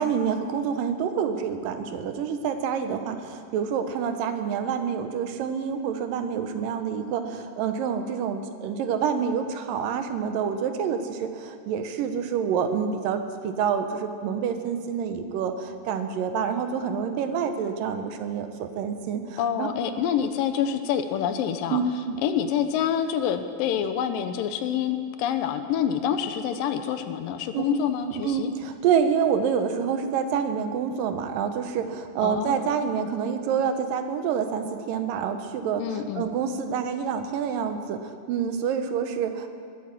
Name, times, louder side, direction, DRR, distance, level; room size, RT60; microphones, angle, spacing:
voice 1, 0.0-19.7 21.7-22.2 27.5-27.7 28.1-39.5, right 7 dB, 75° right, 8 dB, 2.4 m, -27 dB
voice 2, 19.4-28.5 32.2-32.7 35.8-36.3, left 8 dB, 80° left, 9 dB, 2.3 m, -27 dB
20.0 x 9.0 x 7.3 m, 2.2 s
omnidirectional pair, 4.2 m